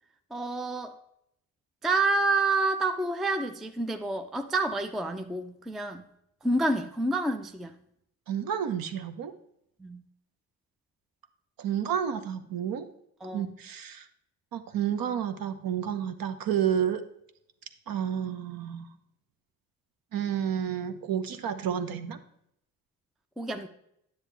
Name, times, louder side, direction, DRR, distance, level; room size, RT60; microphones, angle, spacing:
voice 1, 0.3-1.0 1.8-6.0 6.4-7.7 9.8-10.0 13.2-13.5 23.4-23.7, right 2 dB, ahead, 8 dB, 0.5 m, -28 dB
voice 2, 8.3-9.3 11.6-12.9 13.3-14.1 14.5-17.0 17.9-18.9 20.1-22.2, right 9 dB, 45° right, 10 dB, 0.9 m, -30 dB
9.8 x 6.7 x 3.4 m, 0.75 s
figure-of-eight pair, 45°, 49 cm